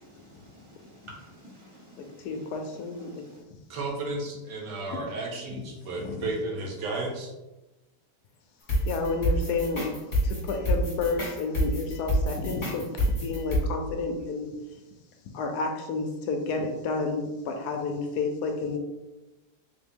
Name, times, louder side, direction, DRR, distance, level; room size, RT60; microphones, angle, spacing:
voice 1, 0.0-3.4, equal, 25° right, -4 dB, 0.8 m, -51 dB
voice 2, 2.2-3.2 4.9-5.0 6.0-6.2 8.9-9.9 10.2-14.5 15.3-18.8, left 3 dB, 75° left, 4 dB, 1.0 m, -30 dB
voice 3, 3.7-7.3, right 2 dB, 80° right, -1 dB, 1.5 m, -33 dB
sound 1, 8.7-13.6, equal, 30° left, 1.2 m, -27 dB
3.8 x 2.9 x 3.5 m, 1.0 s
omnidirectional pair, 1.8 m